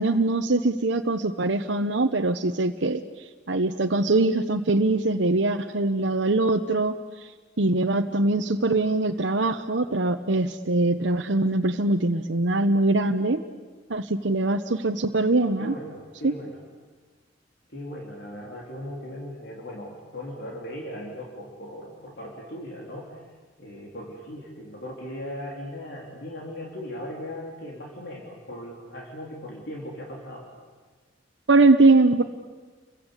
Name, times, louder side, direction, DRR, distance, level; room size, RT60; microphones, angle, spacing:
voice 1, 0.0-3.0 3.5-7.3 7.6-13.4 13.9-15.7 16.2-16.3 31.5-32.2, right 2 dB, 85° right, 4 dB, 1.0 m, -22 dB
voice 2, 15.6-16.6 17.7-23.3 23.6-30.5, equal, 65° left, -2 dB, 4.1 m, -38 dB
30.0 x 23.0 x 8.3 m, 1.4 s
head